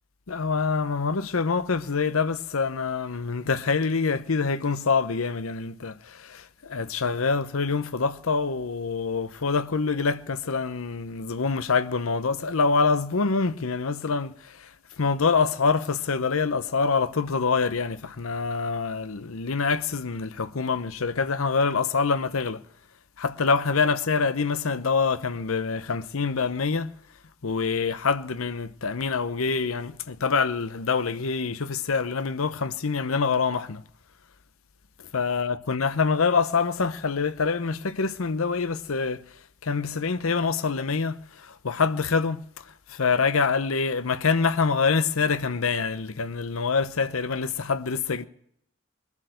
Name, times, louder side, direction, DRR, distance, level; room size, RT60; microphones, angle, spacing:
voice 1, 0.3-14.7 15.0-22.6 23.2-26.9 27.4-33.8 35.1-39.2 39.6-42.4 42.9-48.3, left 5 dB, 80° left, 0.8 m, -25 dB
21.5 x 7.3 x 7.6 m
head